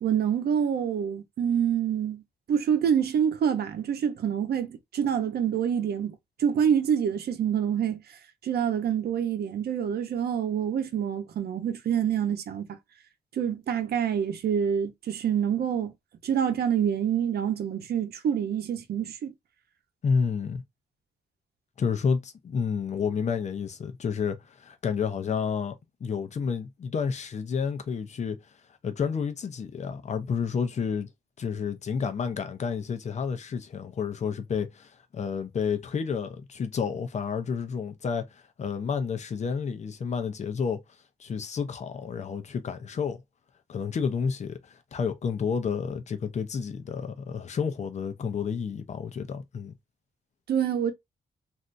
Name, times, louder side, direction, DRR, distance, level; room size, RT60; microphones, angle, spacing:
voice 1, 0.0-2.2 2.5-8.0 8.4-12.8 13.3-15.9 16.2-19.3 50.5-50.9, right 8 dB, 70° right, 0.8 m, -26 dB
voice 2, 20.0-20.6 21.8-25.7 26.0-28.4 28.8-31.1 31.4-40.8 41.2-43.2 43.7-49.7, left 6 dB, 45° left, 0.7 m, -30 dB
3.3 x 2.6 x 2.5 m
wide cardioid pair, 160°, 17 cm